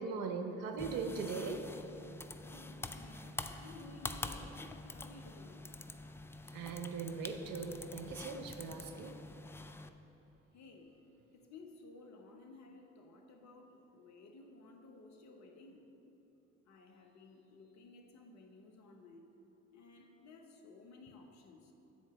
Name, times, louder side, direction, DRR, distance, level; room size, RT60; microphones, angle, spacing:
voice 1, 0.0-1.6 6.5-9.1, right 5 dB, 65° right, 6 dB, 0.8 m, -40 dB
sound 1, 0.8-9.9, left 2 dB, 5° left, 0.3 m, -46 dB
voice 2, 2.3-5.6 10.5-11.0 11.3-15.8 16.7-19.3 19.7-21.7, left 3 dB, 50° left, 2 dB, 1.1 m, -56 dB
9.2 x 4.4 x 6.2 m, 3.0 s
hypercardioid pair, 50°, 36 cm